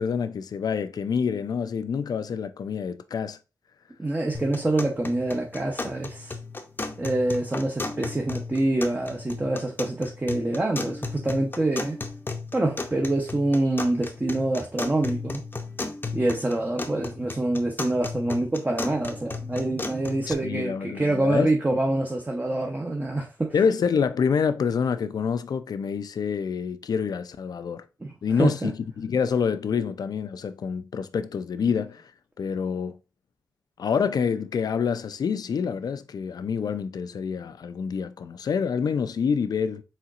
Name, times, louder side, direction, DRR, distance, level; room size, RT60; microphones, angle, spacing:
voice 1, 0.0-3.4 20.3-21.5 23.5-27.8 28.2-32.1 32.4-33.0 33.8-39.8, left 6 dB, 75° left, 0.4 m, -27 dB
voice 2, 4.0-6.4 7.0-12.0 12.5-15.4 16.1-23.5 28.0-28.7, right 2 dB, 25° right, 0.7 m, -26 dB
sound 1, 4.3-20.3, left 3 dB, 30° left, 0.6 m, -35 dB
4.3 x 3.8 x 2.4 m
cardioid pair, 65°, 7 cm